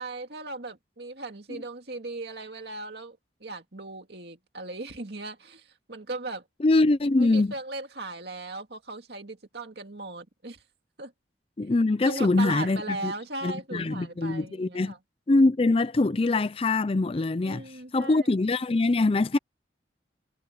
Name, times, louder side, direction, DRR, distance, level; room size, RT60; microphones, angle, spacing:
voice 1, 0.0-6.4 7.2-10.6 11.0-11.1 12.0-15.0 17.4-18.2, right 2 dB, 65° right, 2.2 m, -38 dB
voice 2, 6.6-7.5 11.6-13.1 13.4-14.9 15.3-19.4, left 2 dB, 30° left, 0.4 m, -23 dB
head